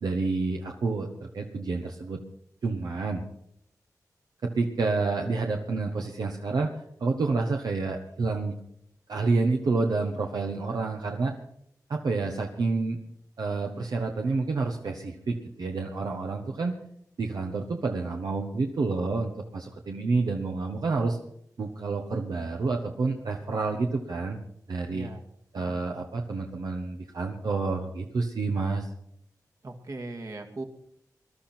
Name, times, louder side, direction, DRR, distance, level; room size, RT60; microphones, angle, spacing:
voice 1, 0.0-2.2 2.6-3.2 4.4-6.7 7.0-8.6 9.1-11.3 11.9-13.0 13.4-16.7 17.2-21.2 21.6-24.4 24.7-25.1 25.5-28.9, right 3 dB, 80° right, 2 dB, 1.2 m, -29 dB
voice 2, 24.9-25.2 25.5-26.0 29.6-30.6, right 2 dB, 55° right, 4 dB, 2.1 m, -39 dB
20.0 x 12.0 x 4.4 m, 0.71 s
cardioid pair, 60°, 7 cm